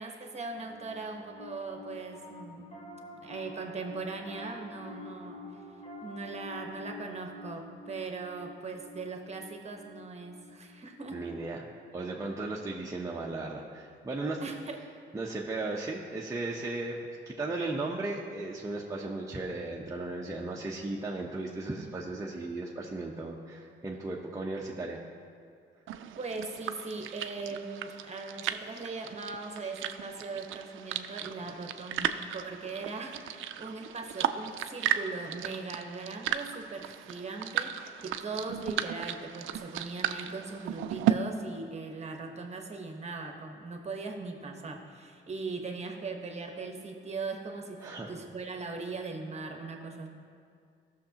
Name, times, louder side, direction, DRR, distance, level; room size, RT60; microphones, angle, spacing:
voice 1, 0.0-2.7 3.2-5.4 6.0-11.3 14.4-14.8 26.2-50.1, right 3 dB, 35° right, 3 dB, 1.1 m, -39 dB
Piano, 0.6-12.1, left 2 dB, 35° left, 1.4 m, -48 dB
voice 2, 11.1-11.7 11.9-14.4 15.1-25.0 47.8-48.1, right 2 dB, 15° right, -3 dB, 0.8 m, -36 dB
sound 1, 25.9-41.1, right 11 dB, 80° right, 0.4 m, -35 dB
14.5 x 6.5 x 2.9 m, 2.3 s
cardioid pair, 90°, 20 cm